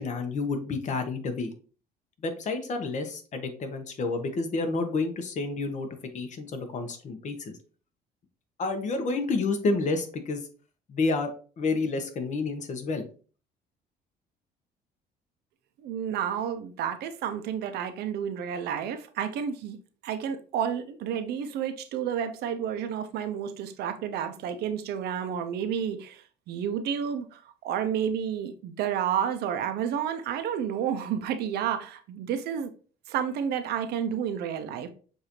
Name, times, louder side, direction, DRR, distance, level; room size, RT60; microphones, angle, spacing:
voice 1, 0.0-1.5 2.2-5.9 6.1-7.5 8.6-10.4 10.9-11.3 11.6-13.0, left 3 dB, 45° left, 1.0 m, -29 dB
voice 2, 15.8-19.8 20.0-32.7 33.1-34.9, right 8 dB, 75° right, 0.6 m, -30 dB
6.6 x 2.7 x 3.0 m
cardioid pair, 110°, 17 cm